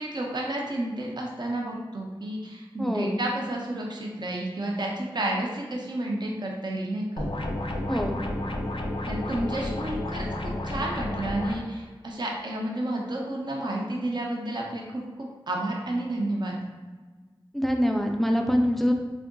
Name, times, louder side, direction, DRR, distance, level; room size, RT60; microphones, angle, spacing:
voice 1, 0.0-7.3 9.1-10.3 10.6-16.6, right 1 dB, 50° right, -1 dB, 0.5 m, -31 dB
voice 2, 2.8-3.2 7.9-8.2 17.5-18.9, equal, ahead, 2 dB, 0.4 m, -24 dB
sound 1, 7.2-11.6, left 1 dB, 70° left, 0.4 m, -31 dB
3.5 x 2.5 x 2.2 m, 1.3 s
wide cardioid pair, 60°, 9 cm